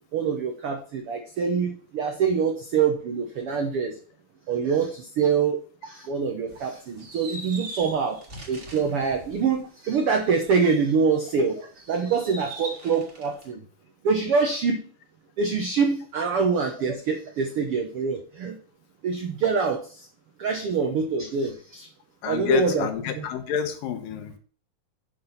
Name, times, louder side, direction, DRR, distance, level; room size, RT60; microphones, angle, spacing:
voice 1, 0.1-3.9 4.5-8.2 8.5-11.6 11.9-13.6 14.0-14.8 15.4-18.6 19.0-20.1 20.4-21.9 22.2-22.9 23.2-23.3, right 5 dB, 75° right, 4 dB, 1.3 m, -25 dB
sound 1, 6.5-11.3 11.7-13.5, right 2 dB, 30° right, 1.6 m, -42 dB
voice 2, 22.2-24.4, left 10 dB, 85° left, 7 dB, 2.9 m, -27 dB
7.4 x 6.0 x 5.7 m, 0.42 s
omnidirectional pair, 3.9 m